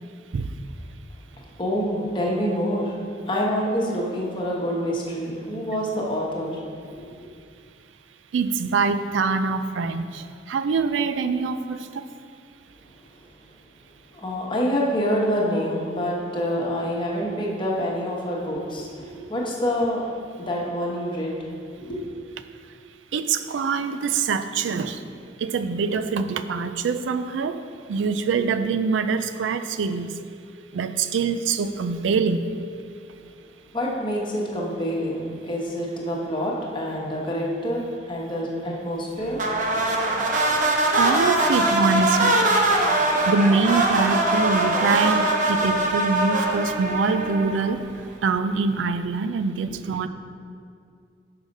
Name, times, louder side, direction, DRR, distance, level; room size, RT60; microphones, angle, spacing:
voice 1, 1.6-3.0 3.3-6.6 6.9-7.0 14.1-20.0 20.4-22.0 33.7-39.8, equal, 25° left, -3 dB, 1.1 m, -27 dB
voice 2, 8.3-10.2 10.5-12.0 23.1-25.0 25.4-27.6 27.9-30.1 30.7-32.5 40.9-42.4 43.3-47.8 48.2-50.1, right 4 dB, 85° right, 10 dB, 0.4 m, -24 dB
sound 1, 39.4-47.8, right 2 dB, 45° right, 0.8 m, -22 dB
6.4 x 4.9 x 5.3 m, 2.4 s
head